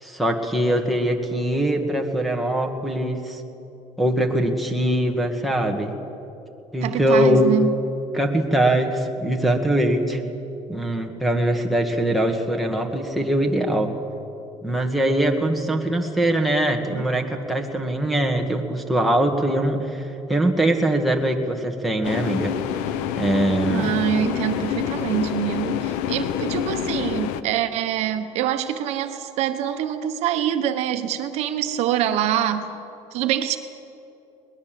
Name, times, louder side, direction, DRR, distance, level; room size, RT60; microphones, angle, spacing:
voice 1, 0.0-3.4 4.0-5.9 6.7-7.6 8.1-10.2 10.7-13.9 14.6-22.5 23.2-23.9, right 1 dB, ahead, 1 dB, 1.8 m, -22 dB
voice 2, 6.8-7.7 23.7-32.7 33.1-33.6, right 10 dB, 60° right, 8 dB, 1.2 m, -25 dB
sound 1, 22.0-27.4, left 9 dB, 90° left, 1.0 m, -27 dB
21.5 x 19.5 x 7.7 m, 2.8 s
cardioid pair, 155°, 12 cm